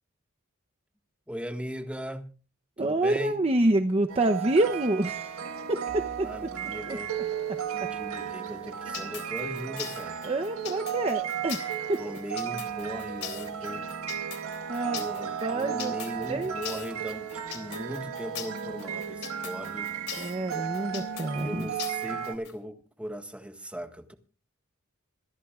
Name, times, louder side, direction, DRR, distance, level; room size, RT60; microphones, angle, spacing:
voice 1, 1.3-2.3 2.8-3.4 6.2-7.2 7.9-10.2 12.0-13.9 14.9-19.9 21.4-24.1, equal, 5° right, 1.6 m, -38 dB
voice 2, 2.8-5.4 5.7-6.3 6.9-7.0 7.5-7.6 10.2-12.0 14.7-15.0 15.4-15.9 16.2-16.5 20.2-21.7, right 2 dB, 30° right, 0.8 m, -27 dB
sound 1, 4.1-22.3, right 8 dB, 80° right, 1.6 m, -35 dB
sound 2, 8.9-22.5, left 10 dB, 75° left, 3.6 m, -40 dB
26.5 x 12.5 x 2.5 m
head